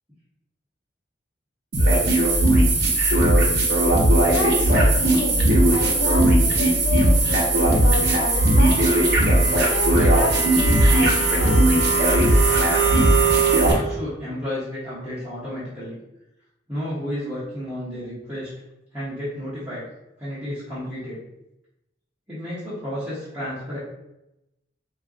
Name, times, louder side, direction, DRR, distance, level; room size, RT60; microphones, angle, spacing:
sound 1, 1.7-13.7, right 1 dB, 60° right, 0.7 m, -18 dB
voice 1, 3.6-12.4, left 2 dB, 85° left, 0.5 m, -30 dB
voice 2, 13.7-16.0 16.7-18.5 18.9-19.8 20.2-21.2 22.3-23.8, equal, 15° right, 0.9 m, -32 dB
2.3 x 2.2 x 3.7 m
head